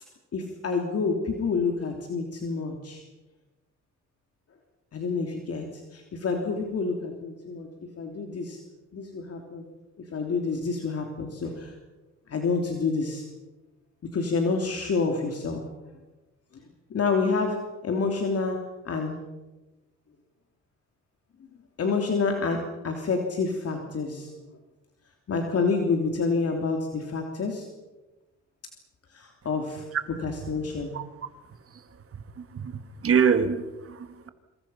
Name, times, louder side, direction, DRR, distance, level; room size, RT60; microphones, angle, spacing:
voice 1, 0.3-3.0 4.9-8.6 8.9-9.7 10.1-11.7 12.3-13.2 14.1-15.6 16.9-17.6 17.8-18.6 18.8-19.2 21.8-24.3 25.3-27.7 29.1-29.8 30.2-30.9, left 4 dB, 50° left, 3 dB, 3.2 m, -28 dB
voice 2, 32.4-34.3, right 6 dB, 50° right, 9 dB, 2.1 m, -25 dB
27.0 x 26.0 x 5.8 m, 1.1 s
cardioid pair, 90°, 30 cm